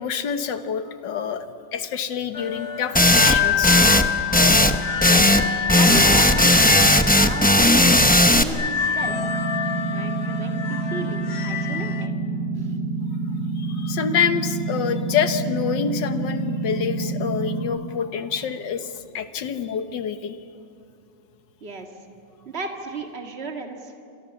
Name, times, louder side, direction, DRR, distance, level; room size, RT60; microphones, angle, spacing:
voice 1, 0.0-3.8 13.6-20.4, left 7 dB, 70° left, 9 dB, 1.8 m, -27 dB
sound 1, 2.3-12.1, left 7 dB, 50° left, 0.8 m, -27 dB
sound 2, 2.9-3.4 3.6-4.1 4.3-5.4 5.7-8.4, left 1 dB, 10° left, 0.4 m, -16 dB
voice 2, 5.6-7.7 8.0-9.2 9.9-12.1 12.6-12.7 21.6-21.9 22.5-23.9, right 4 dB, 35° right, 4 dB, 2.2 m, -35 dB
sound 3, 9.0-17.6, right 3 dB, 60° right, 6.4 m, -28 dB
28.5 x 27.0 x 7.1 m, 2.6 s
omnidirectional pair, 2.0 m